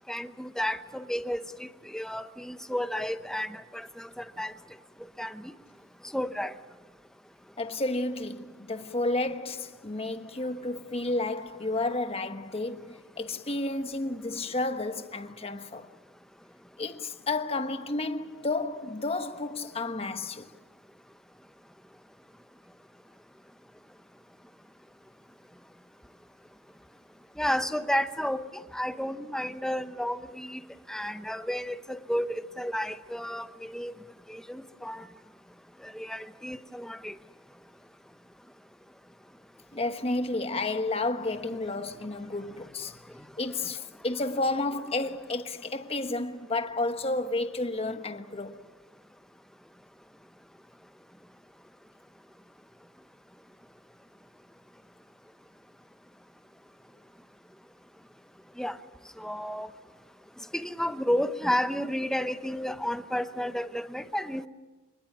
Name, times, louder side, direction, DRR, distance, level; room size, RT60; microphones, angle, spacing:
voice 1, 0.1-4.5 5.2-5.5 6.1-6.5 27.4-30.6 30.9-33.9 34.3-35.1 35.8-37.1 58.6-58.8 59.2-59.7 60.5-64.5, equal, 5° left, 0.8 m, -32 dB
voice 2, 7.6-15.9 16.8-20.5 39.7-48.6, left 2 dB, 30° left, 1.2 m, -31 dB
28.0 x 21.0 x 7.4 m
head